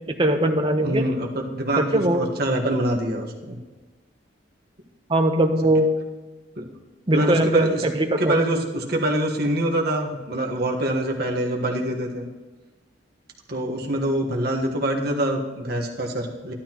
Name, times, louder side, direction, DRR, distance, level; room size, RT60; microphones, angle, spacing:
voice 1, 0.1-1.1 1.8-2.2 5.1-5.9 7.1-8.4, right 1 dB, 30° right, 5 dB, 0.9 m, -21 dB
voice 2, 0.8-3.6 6.6-6.7 7.1-7.8 8.2-12.3 13.5-16.5, right 1 dB, 55° right, 0 dB, 1.4 m, -25 dB
12.5 x 11.5 x 3.0 m, 1.3 s
head